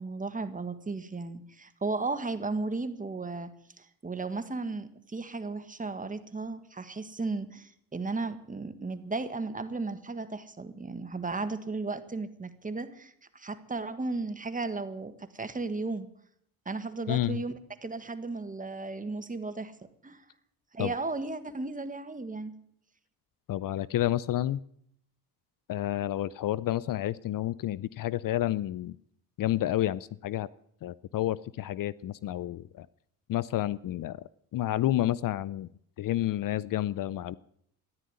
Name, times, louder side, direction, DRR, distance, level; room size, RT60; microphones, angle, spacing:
voice 1, 0.0-3.5 3.8-16.1 16.6-17.5 17.8-19.7 20.0-20.2 20.7-22.5, right 3 dB, 20° right, 10 dB, 1.6 m, -35 dB
voice 2, 17.1-17.4 20.8-20.9 23.5-24.6 25.7-29.0 29.4-30.5 30.8-32.9 33.3-34.2 34.5-35.7 36.0-37.4, left 13 dB, 55° left, 20 dB, 0.6 m, -30 dB
14.0 x 11.0 x 9.6 m, 0.68 s
cardioid pair, 90°, 39 cm